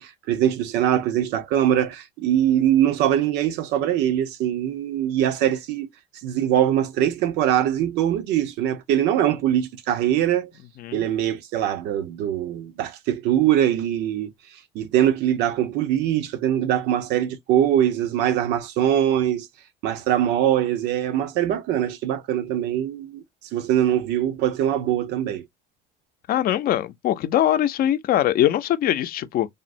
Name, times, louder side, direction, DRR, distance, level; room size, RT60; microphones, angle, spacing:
voice 1, 0.0-5.9 6.2-10.5 10.9-14.3 14.7-19.5 19.8-23.2 23.5-25.4, right 11 dB, 90° right, 0.7 m, -22 dB
voice 2, 26.3-29.5, left 12 dB, 60° left, 0.5 m, -22 dB
3.6 x 2.0 x 2.4 m
cardioid pair, 110°, 17 cm